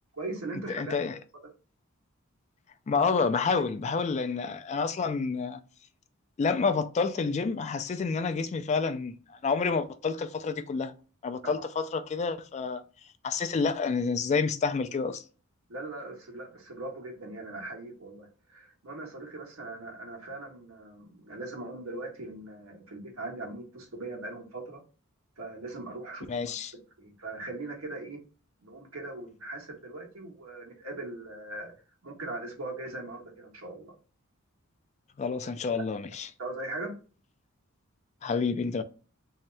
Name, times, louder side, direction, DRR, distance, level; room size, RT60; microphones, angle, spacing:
voice 1, 0.2-1.0 11.4-11.5 15.7-24.8 25.4-26.5 27.0-28.2 28.6-31.7 32.0-33.9 36.4-37.0, right 2 dB, 85° right, 1.2 m, -40 dB
voice 2, 0.7-1.2 2.9-5.6 6.4-10.9 11.2-12.8 13.2-15.2 26.3-26.7 35.2-36.3 38.2-38.8, left 5 dB, 30° left, 0.3 m, -29 dB
3.4 x 2.7 x 3.2 m
head